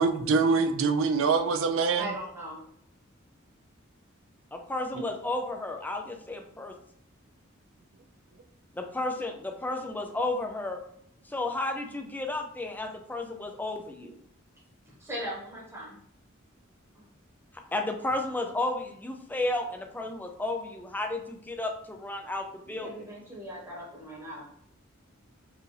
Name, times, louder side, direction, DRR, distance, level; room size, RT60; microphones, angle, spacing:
voice 1, 0.0-2.1 4.9-5.0, right 4 dB, 65° right, 0.4 m, -24 dB
voice 2, 2.0-2.6 15.0-16.0 16.9-17.1 22.6-24.4, right 1 dB, 15° right, 1.0 m, -39 dB
voice 3, 4.5-6.8 8.7-10.8 11.2-14.2 17.5-22.9, left 2 dB, 10° left, 0.4 m, -33 dB
4.6 x 2.5 x 3.2 m
head